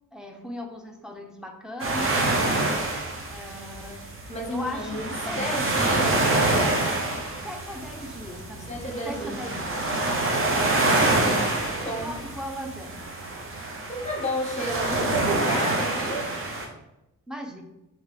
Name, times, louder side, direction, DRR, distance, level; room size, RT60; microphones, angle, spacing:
voice 1, 0.1-2.3 3.3-4.1 4.5-5.0 5.2-6.2 7.3-9.9 10.5-10.9 11.8-13.1 17.3-17.6, left 1 dB, ahead, 3 dB, 0.5 m, -38 dB
sound 1, 1.8-16.7, right 2 dB, 40° right, 0.7 m, -26 dB
voice 2, 4.3-6.2 8.7-9.7 11.2-12.2 13.9-16.3, equal, 20° left, 1 dB, 0.9 m, -32 dB
3.6 x 3.5 x 3.3 m, 0.90 s
wide cardioid pair, 115°, 32 cm